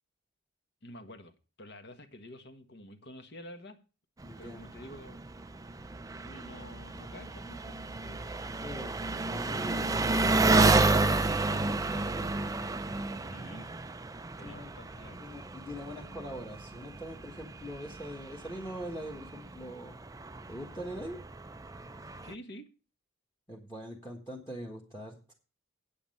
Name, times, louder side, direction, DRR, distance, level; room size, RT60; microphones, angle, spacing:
voice 1, 0.8-3.8 4.4-5.2 6.2-8.2 11.0-12.3 13.2-13.7 14.3-15.3 22.2-22.7, left 1 dB, 50° left, 8 dB, 1.4 m, -49 dB
voice 2, 4.2-4.6 8.6-9.0 9.2-10.0 11.0-12.5 14.4-14.7 15.2-20.0 20.5-21.2 23.5-25.3, equal, 10° left, 2 dB, 1.5 m, -43 dB
Engine, 4.2-22.3, right 3 dB, 15° right, 0.4 m, -31 dB
8.8 x 8.5 x 5.5 m, 0.33 s
head